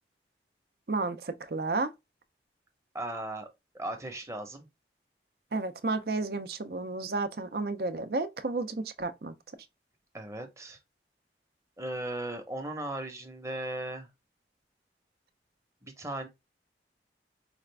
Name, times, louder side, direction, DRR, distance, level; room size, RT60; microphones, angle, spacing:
voice 1, 0.9-1.9 5.5-9.3, right 3 dB, 60° right, 0.6 m, -32 dB
voice 2, 2.9-3.5 3.7-4.7 10.1-10.8 11.8-14.1 15.8-16.3, right 1 dB, 15° right, 0.9 m, -37 dB
5.0 x 2.5 x 3.3 m
head